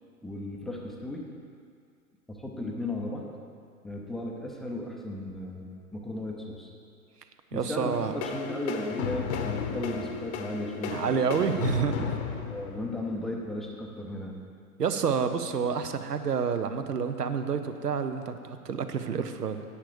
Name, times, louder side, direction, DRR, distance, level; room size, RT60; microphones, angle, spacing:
voice 1, 0.2-1.2 2.3-3.2 3.8-5.7 5.9-6.7 7.5-12.1 12.5-14.4, left 1 dB, ahead, -1 dB, 0.6 m, -35 dB
voice 2, 7.5-8.1 10.9-12.1 14.8-19.6, right 6 dB, 85° right, 9 dB, 0.9 m, -29 dB
sound 1, 7.9-13.4, left 6 dB, 45° left, 1.0 m, -34 dB
10.0 x 8.6 x 5.0 m, 2.3 s
figure-of-eight pair, 115°, 46 cm